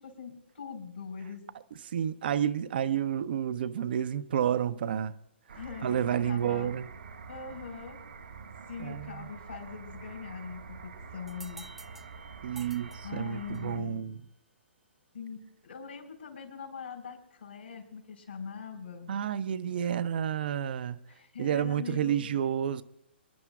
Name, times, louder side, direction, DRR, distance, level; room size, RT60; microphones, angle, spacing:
voice 1, 0.0-1.5 5.5-6.7 7.3-8.0 8.7-11.7 13.0-14.1 15.1-19.1 21.1-22.4, left 6 dB, 75° left, 4.8 m, -42 dB
voice 2, 1.9-5.1 5.8-6.9 8.8-9.3 12.4-14.2 19.1-21.0 21.4-22.8, right 9 dB, 55° right, 0.6 m, -30 dB
sound 1, 5.5-13.8, right 5 dB, 75° right, 1.5 m, -47 dB
sound 2, 11.3-13.8, right 3 dB, 5° right, 0.3 m, -52 dB
27.0 x 10.5 x 2.4 m
figure-of-eight pair, 130°, 6 cm